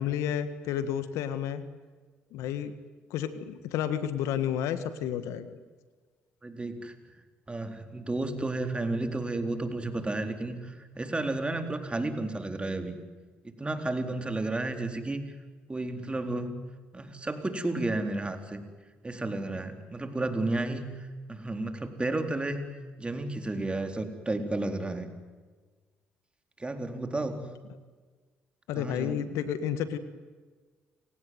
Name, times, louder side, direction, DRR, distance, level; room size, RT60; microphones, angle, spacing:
voice 1, 0.0-1.6 2.3-2.7 3.1-5.6 28.7-30.0, left 9 dB, 80° left, 12 dB, 1.7 m, -31 dB
voice 2, 6.4-6.9 7.5-13.0 13.4-15.3 15.7-16.5 16.9-18.6 19.0-22.7 23.0-25.1 26.6-27.4 28.7-29.2, right 2 dB, 20° right, 6 dB, 4.0 m, -32 dB
29.5 x 18.0 x 9.4 m, 1.4 s
supercardioid pair, 60°, 5 cm